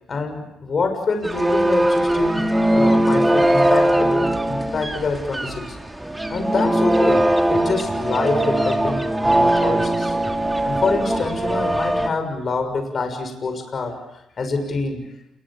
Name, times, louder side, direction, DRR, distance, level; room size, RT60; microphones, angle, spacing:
voice 1, 0.1-5.8 6.3-10.2 10.6-14.0 14.4-15.1, left 4 dB, 45° left, 6 dB, 6.3 m, -26 dB
sound 1, 1.2-12.1, right 1 dB, 10° right, 2.8 m, -20 dB
29.0 x 23.0 x 8.7 m, 0.84 s
cardioid pair, 90°, 0 cm